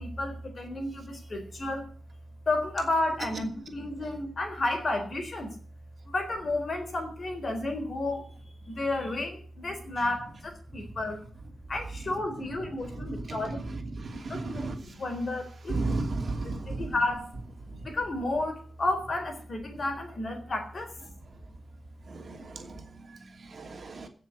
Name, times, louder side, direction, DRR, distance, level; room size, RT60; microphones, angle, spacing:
voice 1, 0.0-1.9 2.5-5.5 6.1-8.2 8.7-11.3 11.7-16.0 16.4-20.9 22.4-22.8, left 2 dB, 40° left, 4.1 m, -32 dB
voice 2, 12.9-15.0 15.7-16.9 22.1-24.1, right 3 dB, 45° right, 2.7 m, -35 dB
16.5 x 6.4 x 8.4 m
wide cardioid pair, 130°, 0 cm